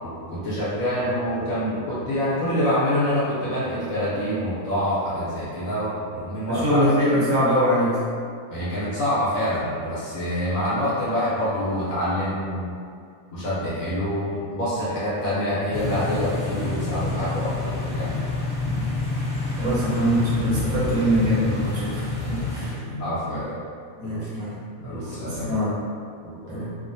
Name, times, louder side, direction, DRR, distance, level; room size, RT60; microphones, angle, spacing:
voice 1, 0.0-6.8 8.5-12.7 13.3-18.3 22.7-23.6 24.0-24.2 24.8-25.6 26.2-26.6, equal, 70° left, -11 dB, 1.2 m, -26 dB
voice 2, 6.5-8.0 18.6-18.9 19.6-22.8 24.0-24.5 24.8-25.8 26.5-26.8, equal, 60° right, -8 dB, 1.1 m, -23 dB
sound 1, 15.7-22.7, left 2 dB, 25° left, 1.3 m, -28 dB
3.1 x 2.1 x 2.6 m, 2.3 s
omnidirectional pair, 1.5 m